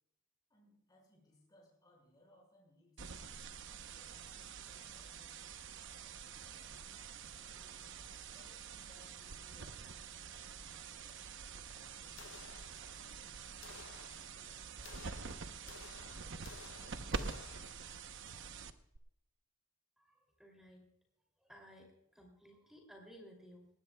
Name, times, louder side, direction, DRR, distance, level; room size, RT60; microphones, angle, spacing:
voice 1, 0.5-3.5 3.9-5.4 5.9-15.1 15.5-17.4, left 1 dB, 20° left, -2 dB, 5.8 m, -68 dB
sound 1, 3.0-19.0, right 5 dB, 60° right, 0.9 m, -47 dB
sound 2, 12.2-13.2 13.6-18.1, left 7 dB, 60° left, 0.7 m, -56 dB
voice 2, 20.0-20.8 21.4-23.7, equal, ahead, 1 dB, 2.8 m, -58 dB
19.0 x 19.0 x 2.3 m, 0.81 s
head